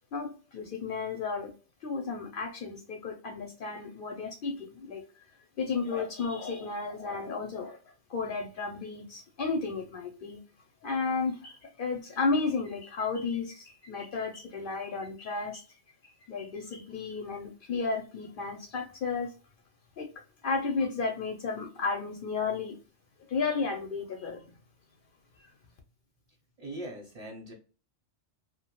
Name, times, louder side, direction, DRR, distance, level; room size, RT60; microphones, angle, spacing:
voice 1, 0.1-1.5 1.8-5.0 5.6-7.8 8.1-10.4 10.8-15.6 16.0-19.3 20.0-20.1 20.4-22.8 23.2-24.4 25.4-25.5, left 4 dB, 60° left, 0.6 m, -33 dB
voice 2, 26.6-27.5, right 1 dB, 40° right, 0.7 m, -42 dB
2.5 x 2.1 x 2.9 m
omnidirectional pair, 1.3 m